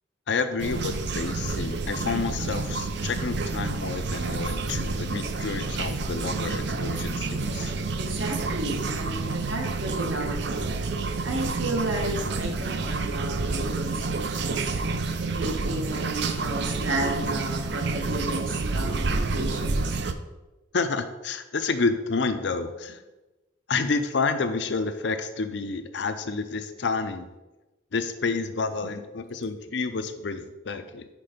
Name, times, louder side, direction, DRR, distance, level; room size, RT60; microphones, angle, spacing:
voice 1, 0.3-7.7 20.7-23.0 23.7-27.3 27.9-31.1, left 4 dB, 60° left, 9 dB, 0.5 m, -29 dB
sound 1, 0.6-20.1, right 3 dB, 60° right, 0.5 m, -29 dB
voice 2, 8.0-10.7 11.2-14.7 15.3-20.0, right 1 dB, 80° right, 2 dB, 1.2 m, -33 dB
6.0 x 4.6 x 5.0 m, 1.1 s
head